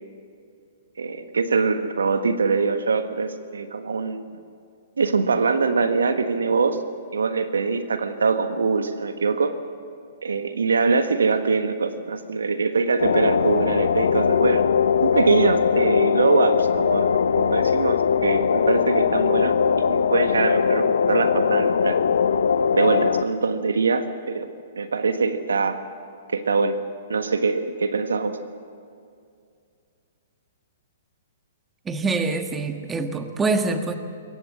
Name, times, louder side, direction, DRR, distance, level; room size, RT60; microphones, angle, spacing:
voice 1, 1.0-4.2 5.0-6.8 7.1-9.5 10.2-14.6 15.0-19.5 19.9-22.0 22.7-24.5 24.8-25.8 26.3-26.8 27.1-28.4, right 4 dB, 80° right, 9 dB, 1.5 m, -23 dB
sound 1, 13.0-23.2, left 6 dB, 75° left, 0.7 m, -20 dB
voice 2, 31.8-33.9, right 3 dB, 15° right, 6 dB, 1.5 m, -25 dB
22.0 x 18.0 x 7.6 m, 2.3 s
hypercardioid pair, 120°, 0 cm